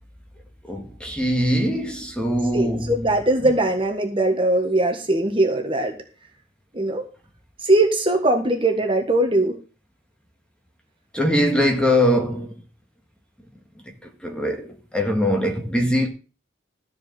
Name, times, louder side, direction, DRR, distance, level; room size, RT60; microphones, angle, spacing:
voice 1, 0.7-3.0 11.1-12.5 14.2-16.1, equal, 5° left, 1.8 m, -22 dB
voice 2, 2.5-5.9 6.7-7.0 7.6-9.6, right 1 dB, 25° right, 1.5 m, -20 dB
14.0 x 4.8 x 7.7 m
head